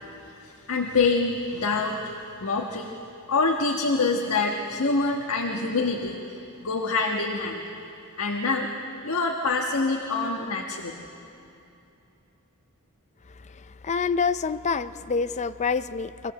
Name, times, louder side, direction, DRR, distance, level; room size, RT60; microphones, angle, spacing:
voice 1, 0.4-2.1 2.4-3.0 3.3-6.2 6.6-7.6 8.2-8.7 9.0-10.9, left 3 dB, 75° left, 0 dB, 1.4 m, -25 dB
voice 2, 13.8-16.3, left 5 dB, 30° left, 13 dB, 0.5 m, -26 dB
25.0 x 16.5 x 7.9 m, 2.8 s
head